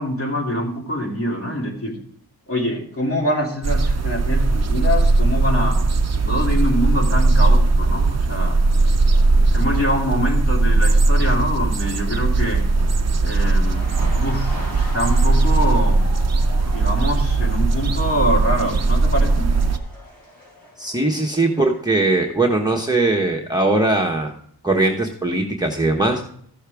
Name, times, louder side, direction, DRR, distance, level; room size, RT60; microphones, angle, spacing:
voice 1, 0.0-1.9 2.5-5.8 6.2-8.6 9.5-12.6 13.2-16.0 16.7-19.5, equal, 35° left, -2 dB, 2.6 m, -24 dB
sound 1, 3.6-19.8, right 3 dB, 40° right, 0.7 m, -18 dB
sound 2, 13.5-22.4 22.7-22.9, left 2 dB, 65° left, 4.7 m, -41 dB
voice 2, 20.8-24.3 24.6-26.3, right 2 dB, 10° right, 1 dB, 1.1 m, -20 dB
14.5 x 6.5 x 3.4 m, 0.62 s
wide cardioid pair, 110°, 39 cm